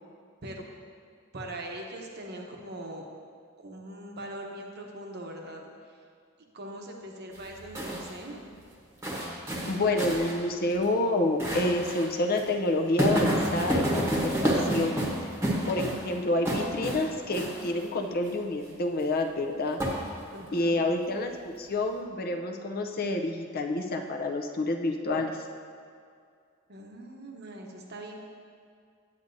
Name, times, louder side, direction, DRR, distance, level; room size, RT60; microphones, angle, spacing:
voice 1, 1.3-3.1 3.6-6.0 6.5-8.4 20.3-20.8 26.7-28.1, right 1 dB, 50° right, 1 dB, 0.9 m, -41 dB
sound 1, 7.3-8.1 9.0-10.3 10.7-10.8 11.4-12.1 12.3-12.4 13.0-16.1 16.4-17.0 17.3-17.7 19.8-20.4, right 1 dB, 15° right, 1.0 m, -29 dB
voice 2, 9.7-15.1 15.6-19.8 20.5-25.3, left 2 dB, 45° left, 4 dB, 0.6 m, -28 dB
9.5 x 8.4 x 2.7 m, 2.2 s
head